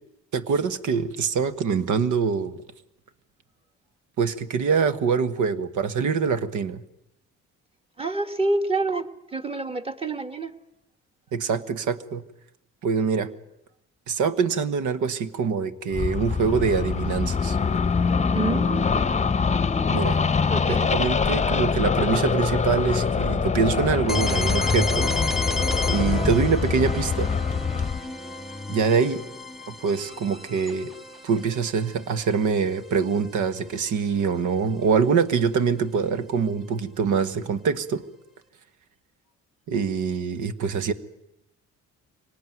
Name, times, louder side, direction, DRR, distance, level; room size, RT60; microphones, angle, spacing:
voice 1, 0.3-2.6 4.2-6.8 11.3-12.2 12.8-13.3 14.1-17.6 19.9-20.2 20.7-25.1 25.9-27.3 28.7-29.2 29.7-30.9 31.2-38.0 39.7-40.9, right 5 dB, 80° right, 12 dB, 1.5 m, -24 dB
voice 2, 8.0-9.1 9.3-10.5 18.3-19.3 20.5-20.9, right 2 dB, 20° right, 7 dB, 1.8 m, -28 dB
sound 1, 15.9-28.0, left 5 dB, 25° left, 0.9 m, -24 dB
sound 2, 24.1-33.8, left 2 dB, ahead, 1.7 m, -31 dB
24.5 x 19.0 x 9.4 m, 0.85 s
cardioid pair, 90°, 30 cm